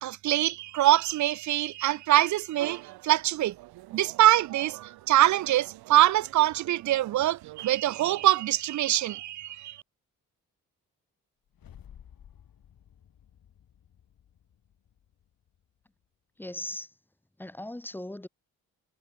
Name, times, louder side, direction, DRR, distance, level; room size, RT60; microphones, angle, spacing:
voice 1, 0.0-3.6 3.9-9.8, right 14 dB, 50° right, 0.5 m, -24 dB
sound 1, 2.6-8.3, right 18 dB, 85° right, 3.1 m, -47 dB
sound 2, 11.5-15.8, left 9 dB, 65° left, 5.0 m, -54 dB
voice 2, 16.4-16.9 17.4-18.3, left 1 dB, 5° left, 0.6 m, -38 dB
hypercardioid pair, 45°, 37 cm